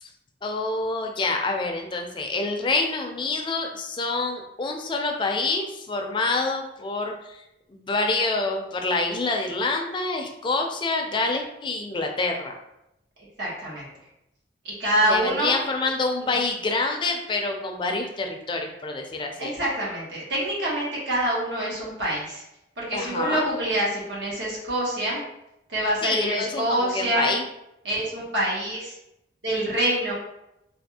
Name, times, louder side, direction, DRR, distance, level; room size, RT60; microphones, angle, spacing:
voice 1, 0.4-7.4 7.7-12.6 15.0-19.5 22.9-23.4 26.0-27.4, left 3 dB, 25° left, 3 dB, 0.4 m, -27 dB
voice 2, 13.4-13.9 14.6-15.6 16.3-16.4 19.4-22.4 22.8-25.2 25.7-27.3 27.8-29.0 29.4-30.1, right 1 dB, 90° right, -5 dB, 1.1 m, -26 dB
3.4 x 2.3 x 2.7 m, 0.86 s
head